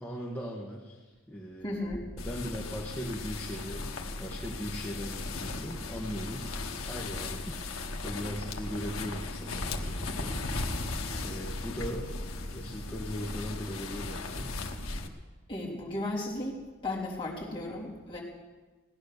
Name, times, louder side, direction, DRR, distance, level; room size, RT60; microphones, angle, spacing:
voice 1, 0.0-1.7 2.2-3.9 4.2-6.5 6.8-10.4 11.2-14.5, equal, 10° left, -5 dB, 1.6 m, -39 dB
voice 2, 1.6-2.1 15.5-18.2, left 1 dB, 25° left, -5 dB, 3.6 m, -35 dB
sound 1, 2.2-15.1, left 2 dB, 85° left, 1.3 m, -37 dB
18.0 x 10.5 x 6.8 m, 1.3 s
head